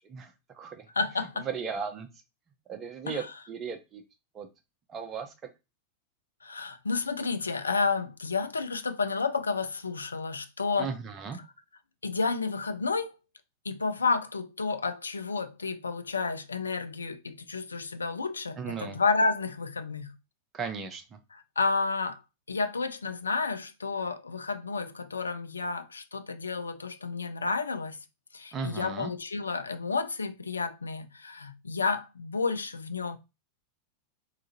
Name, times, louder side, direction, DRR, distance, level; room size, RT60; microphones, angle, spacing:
voice 1, 0.0-0.9 1.4-2.1 2.7-4.0 4.3-4.5 4.9-5.3 10.8-11.4 18.5-19.0 20.5-21.2 28.5-29.1, right 5 dB, 25° right, 0.7 m, -36 dB
voice 2, 1.0-1.5 3.1-3.3 6.4-10.9 12.0-13.1 13.7-20.1 21.3-22.2 22.5-28.0 28.3-33.2, left 4 dB, 75° left, 0.4 m, -31 dB
3.7 x 2.9 x 2.6 m
figure-of-eight pair, 90°, 0 cm